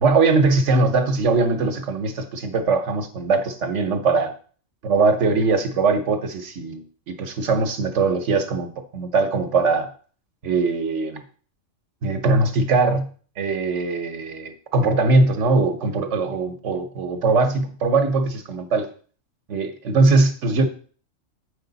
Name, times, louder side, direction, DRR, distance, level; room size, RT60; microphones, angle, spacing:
voice 1, 0.0-4.3 4.8-9.9 10.4-11.2 12.0-13.1 13.4-18.9 19.5-20.7, right 3 dB, 70° right, 1.2 m, -21 dB
7.6 x 5.4 x 3.9 m
omnidirectional pair, 1.3 m